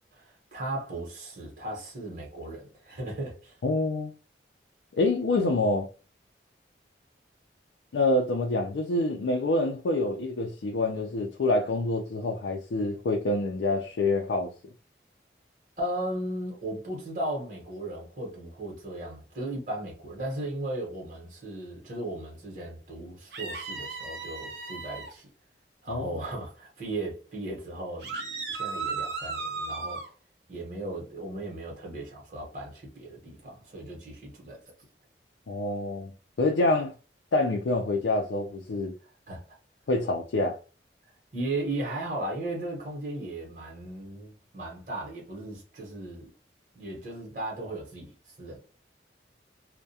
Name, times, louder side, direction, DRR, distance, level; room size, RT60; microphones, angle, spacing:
voice 1, 0.1-3.6 15.8-25.3 25.8-30.0 30.5-34.6 39.3-39.4 41.3-46.3 46.7-48.6, right 1 dB, 45° right, 0.9 m, -36 dB
voice 2, 3.6-4.1 4.9-5.9 7.9-14.5 25.9-26.2 35.5-36.1 36.4-36.9 37.3-38.9 39.9-40.6, left 2 dB, 85° left, 0.4 m, -26 dB
sound 1, 23.3-25.1 28.0-30.1, right 4 dB, 65° right, 0.6 m, -35 dB
2.3 x 2.1 x 2.6 m
head